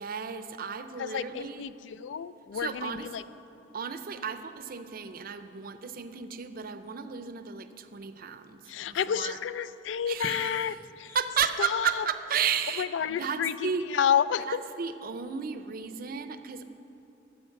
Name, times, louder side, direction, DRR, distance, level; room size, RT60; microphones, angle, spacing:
voice 1, 0.0-1.7 2.5-3.1 3.7-9.4 10.1-10.8 11.1-13.9 14.5-16.6, right 7 dB, 55° right, 10 dB, 0.6 m, -33 dB
voice 2, 1.0-3.2 8.7-11.2 11.6-12.1 12.8-14.6, left 8 dB, 80° left, 16 dB, 0.3 m, -30 dB
12.5 x 7.9 x 5.8 m, 3.0 s
head